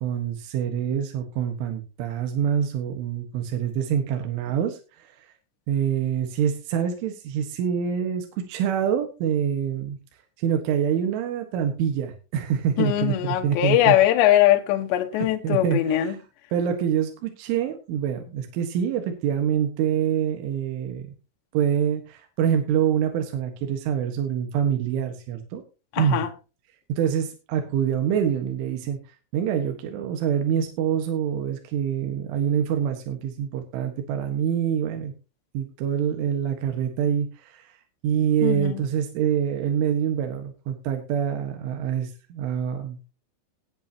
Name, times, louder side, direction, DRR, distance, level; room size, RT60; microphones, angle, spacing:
voice 1, 0.0-5.2 5.7-10.0 10.4-14.0 15.1-16.2 16.5-21.1 21.5-25.6 26.0-26.2 27.0-29.0 29.3-35.1 35.5-37.8 38.0-43.0, right 8 dB, 75° right, 3.9 m, -26 dB
voice 2, 12.8-16.1 25.9-26.3 38.4-38.8, left 13 dB, 70° left, 3.3 m, -21 dB
19.0 x 8.7 x 2.9 m
omnidirectional pair, 5.7 m